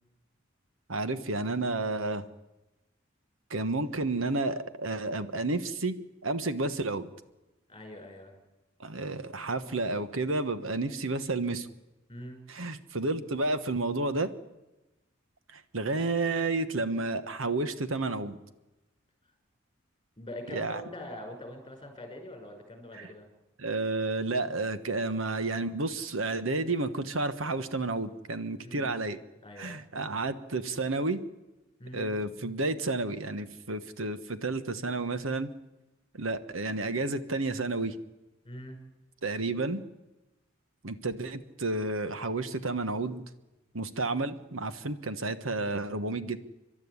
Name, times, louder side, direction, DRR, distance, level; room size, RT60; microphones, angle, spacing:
voice 1, 0.9-2.2 3.5-6.0 6.2-7.1 8.8-11.7 12.5-14.3 15.5-18.4 20.5-20.8 22.9-23.1 23.6-29.2 29.6-31.2 31.9-35.5 36.1-37.9 39.2-39.8 40.8-43.2 43.7-46.4, right 2 dB, 75° right, 11 dB, 1.3 m, -31 dB
voice 2, 7.7-8.3 12.1-12.4 20.2-23.3 28.6-29.0 29.4-29.8 31.8-32.1 38.4-38.8 45.6-45.7, left 1 dB, 25° left, 3 dB, 5.6 m, -43 dB
30.0 x 12.0 x 9.7 m, 1.0 s
head